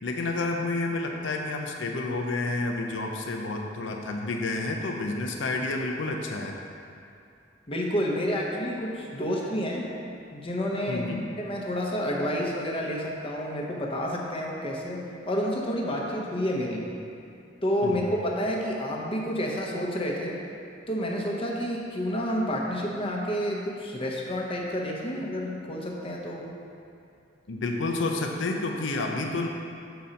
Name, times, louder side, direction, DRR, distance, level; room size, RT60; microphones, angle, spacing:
voice 1, 0.0-6.6 10.9-11.3 17.8-18.1 27.5-29.5, left 2 dB, 90° left, 2 dB, 0.6 m, -30 dB
voice 2, 7.7-9.9 10.3-11.1 11.4-16.8 17.6-20.4 20.9-26.5, equal, 30° left, -2 dB, 0.9 m, -29 dB
6.9 x 4.2 x 5.1 m, 2.5 s
head